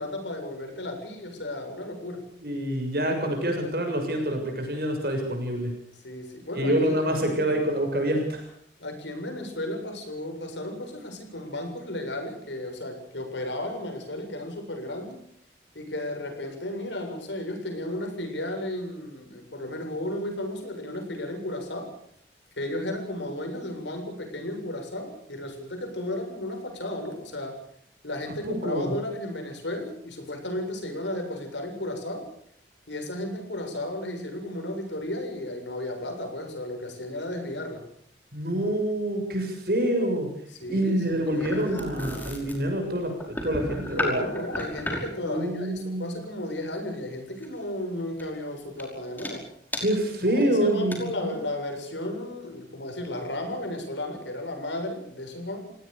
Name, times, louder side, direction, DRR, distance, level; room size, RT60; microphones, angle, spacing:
voice 1, 0.0-2.3 6.0-6.9 7.3-7.6 8.8-15.2 15.7-21.9 22.6-27.6 28.0-32.3 32.9-37.9 40.6-41.6 43.9-49.5 50.3-55.7, left 1 dB, 90° left, 4 dB, 7.4 m, -34 dB
voice 2, 2.4-5.7 6.5-8.4 28.4-28.9 38.3-40.3 40.7-44.2 45.2-46.2 49.8-51.3, right 1 dB, 55° right, 4 dB, 6.8 m, -26 dB
sound 1, 40.6-45.2 47.4-47.6 48.2-48.4 48.8-48.9 49.2-49.3 49.7-49.8 50.4-50.5 50.7-51.0, left 1 dB, 10° left, 5.4 m, -34 dB
29.5 x 18.0 x 6.8 m, 0.64 s
head